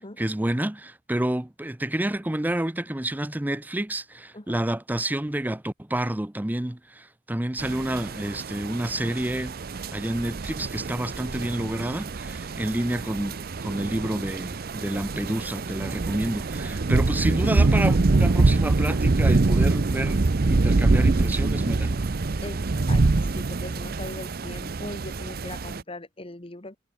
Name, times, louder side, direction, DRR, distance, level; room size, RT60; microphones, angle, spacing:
voice 1, 0.2-9.6 9.9-22.0, right 1 dB, 10° right, 0.6 m, -29 dB
sound 1, 7.6-25.8, right 3 dB, 55° right, 0.7 m, -25 dB
voice 2, 22.4-26.8, left 2 dB, 30° left, 1.8 m, -40 dB
head